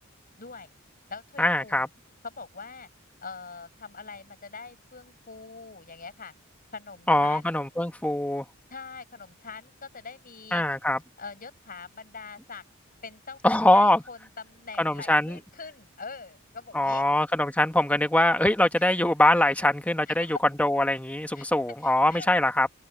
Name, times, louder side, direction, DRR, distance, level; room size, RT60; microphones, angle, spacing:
voice 1, 0.4-0.7 1.1-1.9 2.2-2.9 3.2-6.3 6.7-7.6 8.7-10.6 11.2-12.6 13.0-17.0 18.8-18.9 20.1-20.3 21.3-21.4 21.8-22.3, left 4 dB, 45° left, 6.7 m, -43 dB
voice 2, 1.4-1.9 7.1-8.4 10.5-11.0 13.4-14.0 14.8-15.4 16.7-22.7, left 1 dB, 5° left, 1.2 m, -23 dB
head